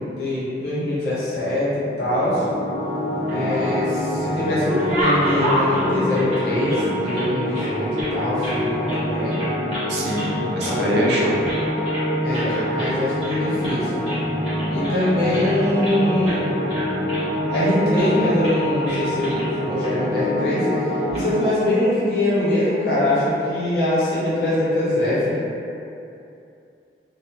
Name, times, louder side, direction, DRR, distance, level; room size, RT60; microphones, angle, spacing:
voice 1, 0.0-2.4 3.3-9.4 10.6-10.9 12.2-14.0 14.7-16.4 17.5-20.7 21.1-25.4, left 1 dB, 65° left, -9 dB, 0.9 m, -23 dB
sound 1, 2.0-21.4, left 1 dB, 35° left, 0.5 m, -25 dB
sound 2, 3.1-4.0 4.3-7.3 7.5-8.6 8.9-9.0 9.3-9.9 10.1-10.8 11.1-12.1 12.3-12.5 12.8-12.9 13.2-13.8 14.1-16.0 16.2-16.4 16.7-17.6 18.0-18.2 18.4-18.6 18.9-19.5 19.8-19.9 20.9-21.2, equal, 35° right, 1.0 m, -29 dB
voice 2, 9.9-11.6 12.5-12.7, equal, 70° right, -5 dB, 0.5 m, -24 dB
3.0 x 2.3 x 2.3 m, 2.7 s
head